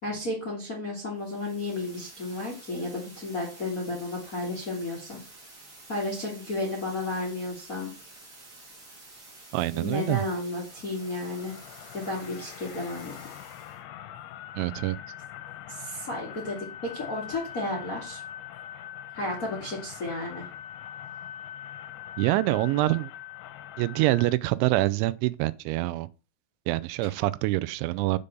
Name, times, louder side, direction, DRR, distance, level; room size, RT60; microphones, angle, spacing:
voice 1, 0.0-5.2 5.9-7.9 9.7-11.5 11.9-13.1 15.7-18.2 19.1-20.5, left 2 dB, 40° left, 1.3 m, -33 dB
sound 1, 1.1-13.8, right 2 dB, 45° right, 1.7 m, -50 dB
voice 2, 9.5-10.2 14.5-15.0 22.2-23.1 23.8-26.1 26.7-28.2, right 18 dB, 90° right, 2.9 m, -25 dB
sound 2, 10.7-24.4, left 11 dB, 90° left, 3.0 m, -43 dB
6.9 x 5.1 x 6.8 m
omnidirectional pair, 5.3 m